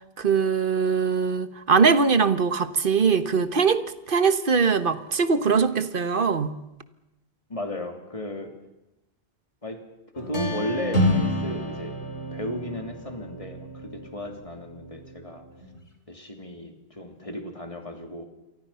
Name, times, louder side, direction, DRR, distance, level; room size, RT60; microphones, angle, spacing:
voice 1, 0.2-6.6, right 5 dB, 55° right, 12 dB, 1.4 m, -22 dB
voice 2, 7.5-8.5 9.6-9.8 10.1-12.0 12.3-15.4 16.1-18.3, left 1 dB, 30° left, 5 dB, 3.1 m, -34 dB
sound 1, 10.2-15.8, equal, 80° left, 3.8 m, -29 dB
28.5 x 23.5 x 5.7 m, 0.96 s
omnidirectional pair, 1.1 m